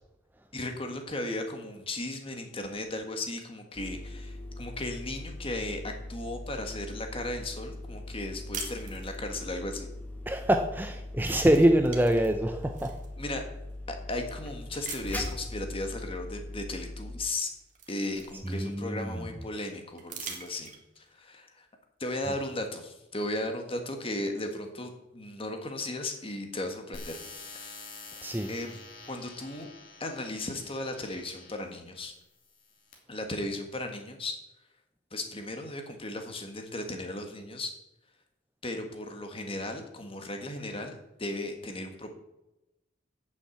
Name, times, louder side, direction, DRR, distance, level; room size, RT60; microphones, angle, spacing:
voice 1, 0.5-9.9 13.2-13.4 14.1-17.5 17.9-21.6 22.0-27.1 27.5-27.8 28.5-28.8 29.1-29.7 30.0-32.1 33.1-34.4 35.1-37.7 38.6-40.9 41.2-42.1, left 2 dB, 30° left, 5 dB, 1.6 m, -36 dB
sound 1, 3.7-17.3, left 1 dB, 10° left, 1.6 m, -41 dB
sound 2, 8.5-9.5 10.9-11.1 11.4-13.1 13.7-13.8 14.8-15.4 16.9-17.0 17.4-18.9 20.0-21.1, right 6 dB, 40° right, 1.8 m, -43 dB
voice 2, 10.3-12.9 18.4-19.2 28.2-28.5, right 1 dB, 10° right, 6 dB, 0.6 m, -25 dB
sound 3, 26.9-31.7 32.4-32.9, left 3 dB, 50° left, 2.8 m, -47 dB
8.9 x 7.3 x 7.7 m, 0.93 s
head